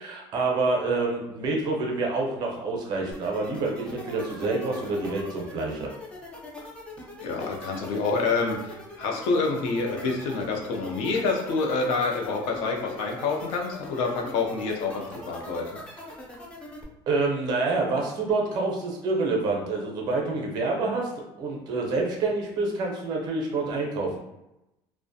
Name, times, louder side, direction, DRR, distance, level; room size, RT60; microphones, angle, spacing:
voice 1, 0.0-5.9 17.1-21.1 21.4-24.2, right 3 dB, 45° right, 0 dB, 0.5 m, -27 dB
sound 1, 3.1-16.8, left 1 dB, 10° left, 0.4 m, -42 dB
voice 2, 7.2-15.8, left 4 dB, 70° left, 1 dB, 0.5 m, -27 dB
2.3 x 2.1 x 2.6 m, 0.91 s
cardioid pair, 165°, 10 cm